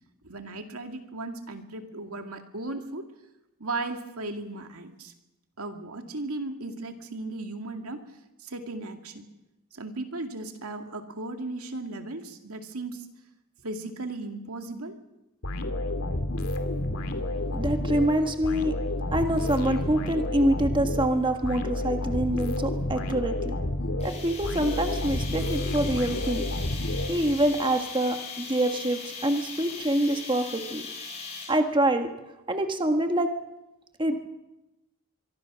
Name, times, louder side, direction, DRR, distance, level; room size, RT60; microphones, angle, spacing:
voice 1, 0.2-3.1 3.6-5.1 5.6-8.0 8.4-9.3 9.7-13.1 13.6-15.0, right 2 dB, 85° right, 5 dB, 2.3 m, -36 dB
sound 1, 15.4-27.6, left 1 dB, 80° left, 2.6 m, -30 dB
voice 2, 17.5-18.7 19.1-23.5 24.0-26.4 27.1-30.8 31.5-32.1 32.5-33.3 34.0-34.3, right 1 dB, 20° right, 5 dB, 1.5 m, -26 dB
sound 2, 24.0-31.7, left 5 dB, 30° left, 6.7 m, -39 dB
24.0 x 24.0 x 6.3 m, 0.99 s
head